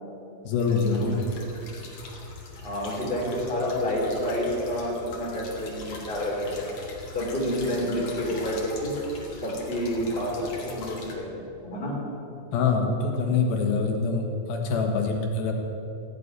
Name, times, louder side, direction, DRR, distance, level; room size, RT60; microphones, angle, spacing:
voice 1, 0.4-1.1 12.5-15.5, left 4 dB, 85° left, 1 dB, 3.5 m, -25 dB
sound 1, 0.6-11.1, left 2 dB, 45° left, 2.8 m, -42 dB
voice 2, 2.6-6.6 7.1-8.9 9.4-11.9, equal, 15° left, -4 dB, 3.4 m, -29 dB
16.5 x 8.5 x 9.7 m, 3.0 s
omnidirectional pair, 4.2 m